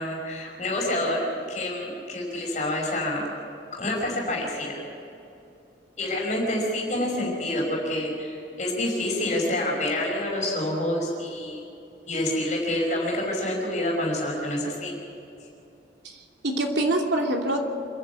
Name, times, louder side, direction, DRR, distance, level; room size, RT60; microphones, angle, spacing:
voice 1, 0.0-3.3 3.8-4.8 6.0-11.6 12.1-14.9, left 1 dB, 40° left, -2 dB, 5.7 m, -27 dB
voice 2, 16.0-17.6, right 1 dB, 75° right, 1 dB, 2.8 m, -25 dB
27.5 x 11.0 x 8.4 m, 2.7 s
head